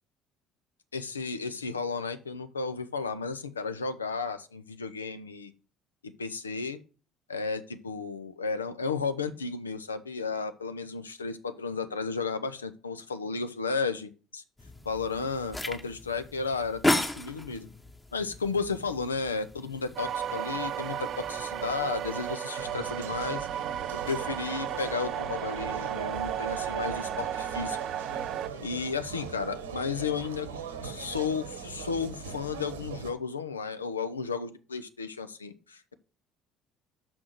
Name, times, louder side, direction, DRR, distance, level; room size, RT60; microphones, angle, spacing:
voice 1, 0.9-5.5 6.0-6.8 7.3-14.4 14.9-16.8 17.1-17.7 18.1-23.5 23.9-27.8 28.6-30.5 30.8-35.9, left 5 dB, 90° left, 11 dB, 0.6 m, -33 dB
sound 1, 14.6-22.4, left 1 dB, 15° left, 1.2 m, -35 dB
sound 2, 20.0-28.5, right 10 dB, 55° right, 0.5 m, -34 dB
sound 3, 22.6-33.1, right 6 dB, 85° right, 1.1 m, -40 dB
6.1 x 6.1 x 6.6 m, 0.35 s
hypercardioid pair, 55°, 0 cm